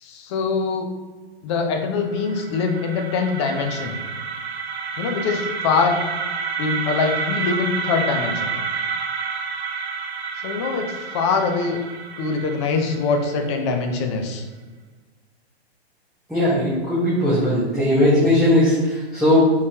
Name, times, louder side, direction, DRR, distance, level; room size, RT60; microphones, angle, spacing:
voice 1, 0.0-0.9 1.4-4.0 5.0-6.0 6.6-8.5 10.4-11.8 12.2-14.4 18.2-18.3, left 4 dB, 25° left, 5 dB, 0.5 m, -23 dB
sound 1, 2.0-13.9, right 5 dB, 80° right, 0.8 m, -29 dB
voice 2, 16.3-19.5, left 1 dB, ahead, -11 dB, 0.9 m, -18 dB
5.4 x 3.1 x 2.8 m, 1.3 s
hypercardioid pair, 140°, 32 cm